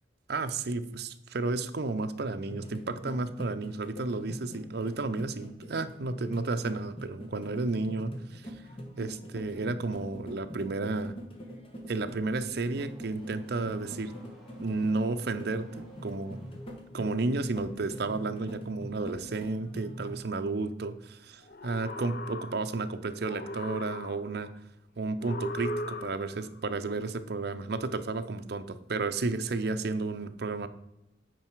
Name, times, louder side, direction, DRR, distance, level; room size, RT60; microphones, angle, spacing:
voice 1, 0.3-8.5 9.0-11.1 11.9-14.1 14.6-16.4 16.9-24.5 25.0-30.7, right 3 dB, 60° right, 9 dB, 0.6 m, -32 dB
sound 1, 2.5-20.2, equal, 30° left, 1.2 m, -44 dB
Car / Accelerating revving vroom, 12.1-17.0, right 1 dB, ahead, 1.6 m, -55 dB
sound 2, 21.4-22.9 23.2-24.5 25.2-26.5, left 1 dB, 50° left, 0.7 m, -38 dB
9.1 x 4.8 x 4.6 m, 0.86 s
head